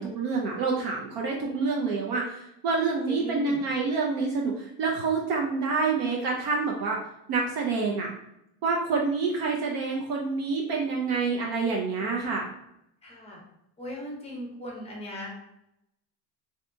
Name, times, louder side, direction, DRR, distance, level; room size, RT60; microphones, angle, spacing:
voice 1, 0.0-7.0 7.3-8.1 8.6-12.5, right 4 dB, 50° right, -1 dB, 0.5 m, -27 dB
voice 2, 3.1-3.6 13.0-13.4 13.8-15.3, equal, 15° left, -2 dB, 0.7 m, -38 dB
3.3 x 2.7 x 2.5 m, 0.81 s
cardioid pair, 155°, 45 cm